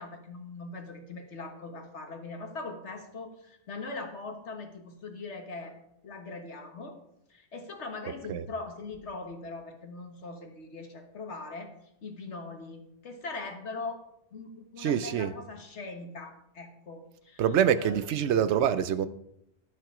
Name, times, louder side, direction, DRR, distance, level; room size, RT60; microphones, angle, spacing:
voice 1, 0.0-5.8 6.0-7.0 7.3-11.7 12.0-14.0 14.3-17.5 17.7-18.1, left 3 dB, 85° left, 4 dB, 1.8 m, -41 dB
voice 2, 14.8-15.3 17.4-19.1, right 9 dB, 85° right, 14 dB, 1.0 m, -25 dB
11.5 x 6.8 x 4.9 m, 0.78 s
omnidirectional pair, 1.1 m